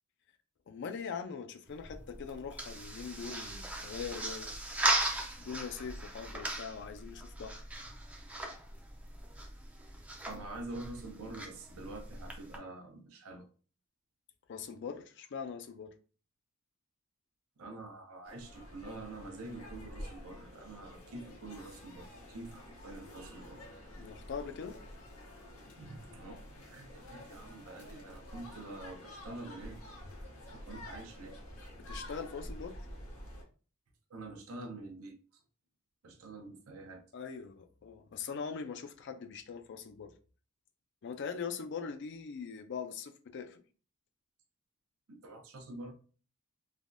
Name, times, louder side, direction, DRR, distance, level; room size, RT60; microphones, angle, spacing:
voice 1, 0.7-4.5 5.4-7.6 14.5-15.9 24.0-24.8 31.9-32.8 37.1-40.1 41.0-43.6, left 6 dB, 55° left, 0.4 m, -42 dB
sound 1, 1.7-12.6, right 1 dB, 5° right, 0.4 m, -38 dB
voice 2, 10.2-13.5 17.6-24.0 25.8-29.8 30.5-31.4 34.1-35.2 36.0-37.0 45.1-45.9, right 2 dB, 80° right, 0.6 m, -46 dB
sound 2, 18.2-33.4, left 1 dB, 85° left, 0.8 m, -49 dB
3.3 x 2.2 x 2.5 m
head